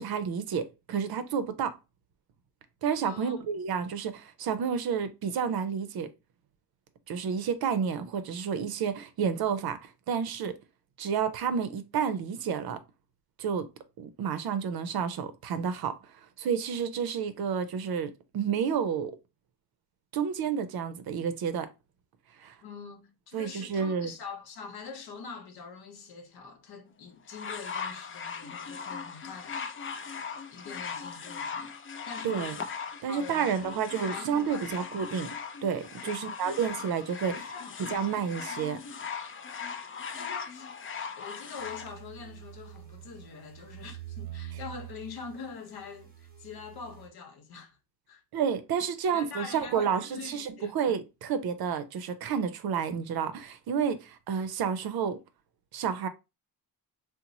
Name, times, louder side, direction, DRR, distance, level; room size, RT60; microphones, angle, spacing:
voice 1, 0.0-1.8 2.8-6.1 7.1-10.6 11.0-12.8 13.4-13.7 14.0-16.0 16.4-19.1 20.1-21.7 22.4-22.5 23.3-24.1 32.2-32.5 33.0-35.3 35.6-37.4 37.8-38.8 48.3-55.2 55.7-56.1, right 7 dB, 65° right, 0.6 m, -30 dB
voice 2, 3.0-3.5 22.6-29.6 30.5-31.7 32.1-32.6 33.1-34.7 36.0-36.6 37.2-37.8 40.1-40.7 41.2-47.8 48.1-48.2 49.1-50.8, left 5 dB, 65° left, 0.9 m, -44 dB
sound 1, 27.3-41.9 42.8-42.9, left 6 dB, 30° left, 0.4 m, -39 dB
sound 2, 41.6-47.1, right 13 dB, 25° right, 0.9 m, -46 dB
2.9 x 2.1 x 3.8 m
cardioid pair, 100°, 40 cm